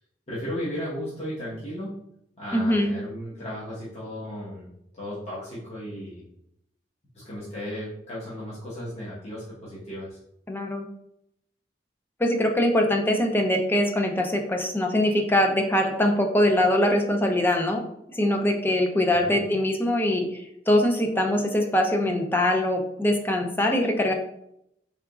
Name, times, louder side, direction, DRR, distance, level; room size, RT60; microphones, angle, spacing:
voice 1, 0.3-1.9 2.4-4.7 4.9-6.2 7.1-10.2 19.1-19.4, equal, 40° left, -10 dB, 1.1 m, -35 dB
voice 2, 2.5-2.9 10.5-10.8 12.2-17.8 18.1-24.1, left 1 dB, 10° left, 3 dB, 0.4 m, -23 dB
3.8 x 3.5 x 2.3 m, 0.77 s
head